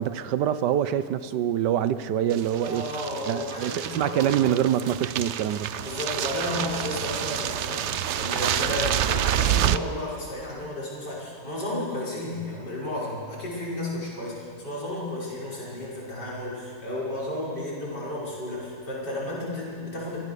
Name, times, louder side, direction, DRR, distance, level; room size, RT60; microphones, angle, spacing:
voice 1, 0.0-2.9 3.3-5.7, right 10 dB, 85° right, 14 dB, 1.4 m, -25 dB
sound 1, 2.3-9.8, right 10 dB, 65° right, 0.7 m, -28 dB
voice 2, 2.6-4.4 5.7-20.2, left 1 dB, 80° left, -6 dB, 6.5 m, -33 dB
24.0 x 16.5 x 6.9 m, 2.2 s
omnidirectional pair, 1.8 m